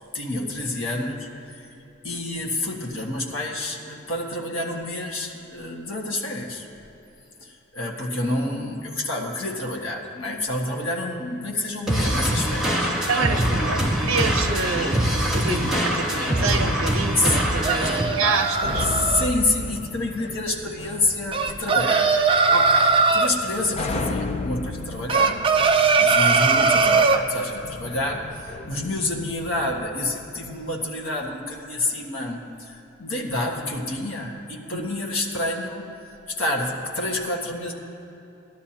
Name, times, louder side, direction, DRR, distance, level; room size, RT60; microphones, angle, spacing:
voice 1, 0.1-1.6 2.0-6.6 7.4-12.9 13.7-14.0 15.5-15.8 17.2-17.4 17.7-18.0 18.9-22.2 23.1-37.7, left 2 dB, 75° left, -1 dB, 1.6 m, -28 dB
sound 1, 11.9-18.0, equal, ahead, 1.7 m, -23 dB
voice 2, 13.1-18.9 22.5-22.9 34.7-34.9, right 4 dB, 75° right, 6 dB, 0.7 m, -27 dB
sound 2, 16.1-29.8, left 2 dB, 35° left, 0.5 m, -35 dB
sound 3, 17.3-19.3 21.3-23.3 25.1-27.2, right 4 dB, 25° right, 0.5 m, -20 dB
18.0 x 12.5 x 2.9 m, 3.0 s
head